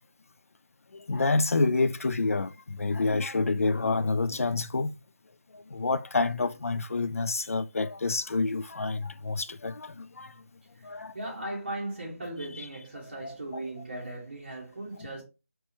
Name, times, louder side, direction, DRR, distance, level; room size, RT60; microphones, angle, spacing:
voice 1, 0.9-4.9 5.5-10.3 10.8-11.1 13.2-13.6, left 3 dB, 75° left, 0.3 m, -28 dB
voice 2, 10.8-15.2, right 1 dB, 40° right, 1.9 m, -38 dB
4.3 x 2.2 x 3.0 m
figure-of-eight pair, 180°, 8 cm